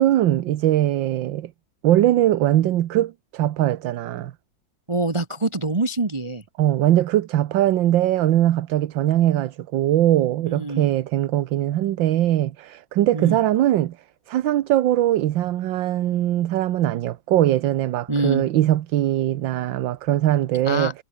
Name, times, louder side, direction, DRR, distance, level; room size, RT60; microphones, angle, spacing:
voice 1, 0.0-1.5 1.8-4.3 6.6-14.0 14.3-20.9, right 13 dB, 75° right, 1.6 m, -21 dB
voice 2, 4.9-6.4 10.4-10.9 13.1-13.4 18.1-18.4 20.6-20.9, right 2 dB, 20° right, 0.8 m, -25 dB
omnidirectional pair, 2.1 m